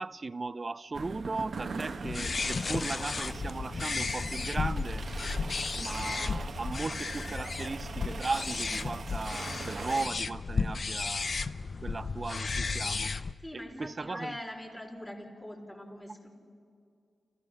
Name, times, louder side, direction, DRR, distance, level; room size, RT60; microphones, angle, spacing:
voice 1, 0.0-5.0 5.8-11.3 11.8-13.1 13.5-14.4, right 3 dB, 35° right, 0.4 m, -37 dB
sound 1, 0.9-10.1, right 4 dB, 60° right, 1.0 m, -41 dB
sound 2, 2.0-13.3, left 4 dB, 45° left, 0.6 m, -34 dB
voice 2, 13.4-16.3, left 1 dB, 15° left, 3.8 m, -42 dB
29.0 x 15.0 x 6.3 m
cardioid pair, 80°, 0 cm